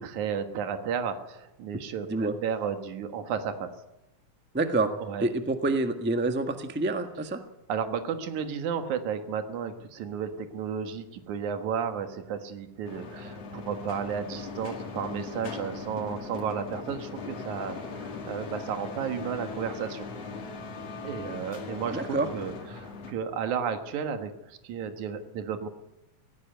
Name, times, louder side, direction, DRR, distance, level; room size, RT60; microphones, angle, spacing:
voice 1, 0.0-3.7 5.0-5.3 7.7-20.1 21.0-25.7, right 7 dB, 75° right, 7 dB, 2.9 m, -33 dB
voice 2, 4.5-4.9 5.2-7.4 21.9-22.3, right 2 dB, 10° right, 6 dB, 0.6 m, -27 dB
sound 1, 12.8-23.1, left 4 dB, 55° left, 3.2 m, -39 dB
18.0 x 15.5 x 9.3 m, 0.94 s
omnidirectional pair, 3.5 m